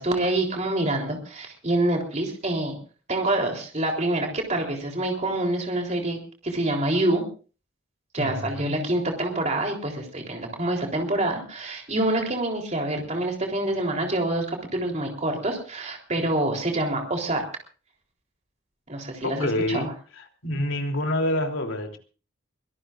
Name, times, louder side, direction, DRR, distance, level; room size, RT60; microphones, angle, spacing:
voice 1, 0.0-2.8 3.1-7.2 8.1-17.4 18.9-19.9, right 1 dB, 35° right, 2 dB, 3.7 m, -26 dB
voice 2, 8.2-8.7 19.2-19.9 20.1-22.0, left 1 dB, 80° left, 4 dB, 3.3 m, -27 dB
24.0 x 17.5 x 2.6 m, 0.37 s
head